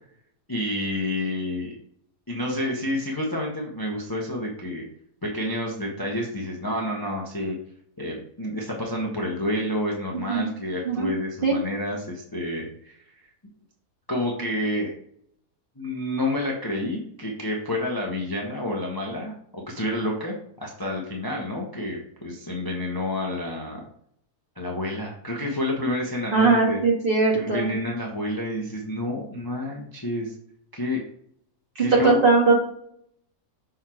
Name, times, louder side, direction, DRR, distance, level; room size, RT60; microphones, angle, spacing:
voice 1, 0.5-1.8 2.3-4.8 5.2-7.6 8.0-13.3 14.1-14.9 15.8-23.8 24.6-26.8 27.3-30.3 30.7-31.0 31.8-32.1, left 1 dB, 15° left, -1 dB, 0.9 m, -29 dB
voice 2, 26.3-27.7 31.9-32.5, right 3 dB, 35° right, -2 dB, 1.7 m, -20 dB
6.2 x 3.8 x 4.4 m, 0.66 s
omnidirectional pair, 1.7 m